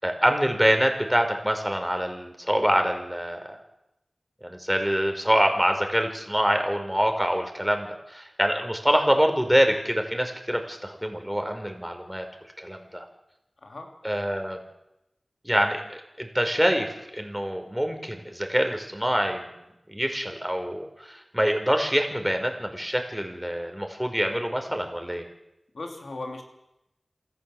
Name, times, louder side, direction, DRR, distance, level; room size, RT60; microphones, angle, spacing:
voice 1, 0.0-3.6 4.4-12.2 12.6-13.0 14.0-14.6 15.4-19.5 19.9-25.2, equal, 5° right, 5 dB, 5.2 m, -25 dB
voice 2, 25.7-26.4, left 2 dB, 75° left, 3 dB, 3.1 m, -37 dB
27.5 x 14.5 x 8.0 m, 0.88 s
cardioid pair, 40°, 0 cm